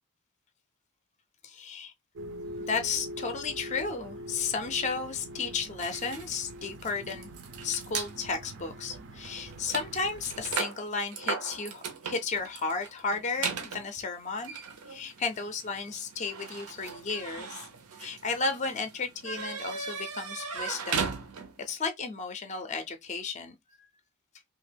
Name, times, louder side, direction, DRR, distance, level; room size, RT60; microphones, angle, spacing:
voice 1, 1.4-1.9 2.6-7.3 7.6-14.6 14.9-17.7 18.0-21.2 21.6-23.5, left 4 dB, 30° left, 0.4 m, -33 dB
sound 1, 2.1-10.6, equal, 55° right, 0.4 m, -43 dB
sound 2, 5.8-8.1 8.8-9.0 9.2-21.7, right 5 dB, 85° right, 0.7 m, -38 dB
2.9 x 2.4 x 3.3 m
head